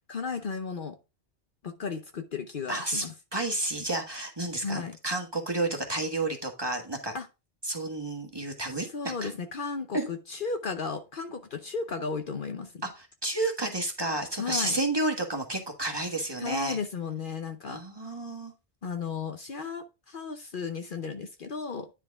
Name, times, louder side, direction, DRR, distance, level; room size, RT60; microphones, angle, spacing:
voice 1, 0.1-1.0 1.6-3.1 4.6-5.0 7.1-7.3 8.9-12.8 14.4-14.8 16.4-17.8 18.8-21.9, left 5 dB, 55° left, 0.9 m, -34 dB
voice 2, 2.7-3.0 3.3-7.1 7.6-9.3 9.9-10.1 12.8-16.8 17.7-18.5, right 2 dB, 25° right, 1.5 m, -31 dB
10.0 x 4.6 x 3.5 m
omnidirectional pair, 1.1 m